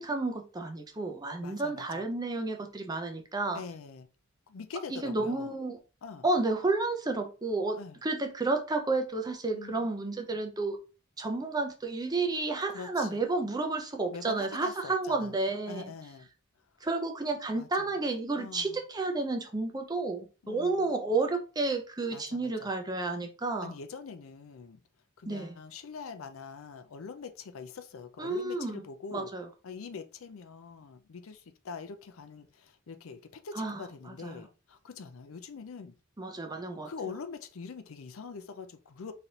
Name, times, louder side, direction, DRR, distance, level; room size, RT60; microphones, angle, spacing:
voice 1, 0.0-3.6 4.9-5.8 6.2-10.8 11.2-15.9 16.8-23.7 25.3-25.5 28.2-28.8 29.1-29.5 33.6-33.8 34.2-34.4 36.2-36.9, right 3 dB, 20° right, 0.6 m, -31 dB
voice 2, 1.4-2.1 3.5-4.1 4.5-5.5 6.0-6.2 7.8-8.0 9.5-9.9 12.7-13.2 14.1-15.3 15.7-16.3 16.8-16.9 17.5-18.0 18.4-18.8 20.4-21.0 22.1-22.7 23.6-24.8 25.2-29.3 29.6-35.9 36.8-39.1, left 5 dB, 80° left, 0.5 m, -44 dB
4.0 x 3.2 x 2.8 m
head